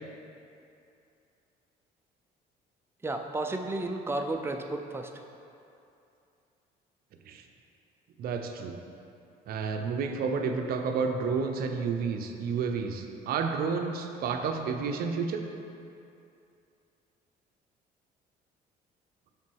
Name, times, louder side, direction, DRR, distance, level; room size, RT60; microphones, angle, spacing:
voice 1, 3.0-5.1, right 2 dB, 15° right, 4 dB, 0.4 m, -32 dB
voice 2, 8.2-8.8 9.5-15.4, right 5 dB, 65° right, 5 dB, 0.5 m, -30 dB
5.8 x 3.8 x 4.6 m, 2.7 s
cardioid pair, 110°, 17 cm